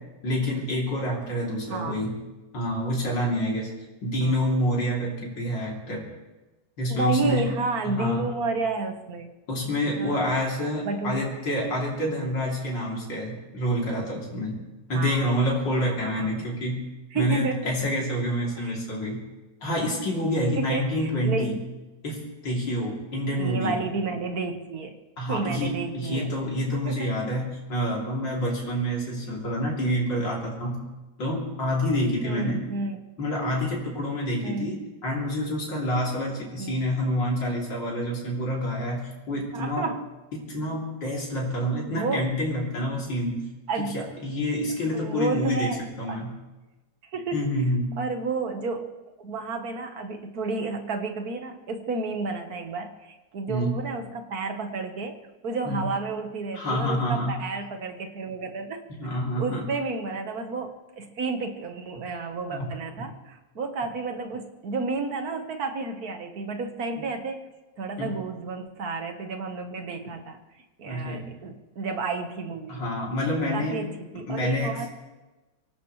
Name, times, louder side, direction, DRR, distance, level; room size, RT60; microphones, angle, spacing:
voice 1, 0.2-2.2 2.5-3.7 4.0-6.0 6.8-7.4 7.8-8.3 9.5-14.6 14.9-16.8 17.1-19.2 19.6-21.5 22.0-23.8 25.2-30.8 31.2-32.6 33.2-34.7 35.0-39.9 40.3-43.4 43.9-46.3 47.3-47.9 53.5-53.8 55.7-55.8 56.5-57.3 58.9-59.7 62.5-62.7 68.0-68.1 70.9-71.3 72.7-73.8 74.3-74.8, equal, 85° left, -4 dB, 3.8 m, -27 dB
voice 2, 1.7-2.1 4.2-4.5 6.9-9.3 9.9-10.4 10.8-11.2 14.9-15.3 16.0-16.5 17.1-17.7 18.6-18.8 20.6-21.6 23.4-25.0 25.3-26.3 26.8-27.2 32.2-33.0 34.4-34.8 36.6-36.8 39.5-40.1 41.9-42.3 43.7-44.0 44.9-46.3 47.1-47.5 48.0-48.9 49.2-55.2 55.4-58.8 59.4-67.5 67.8-70.4 70.8-72.8 73.4-74.9, right 3 dB, 55° right, 6 dB, 1.8 m, -31 dB
24.5 x 17.0 x 3.2 m, 1.1 s
omnidirectional pair, 2.0 m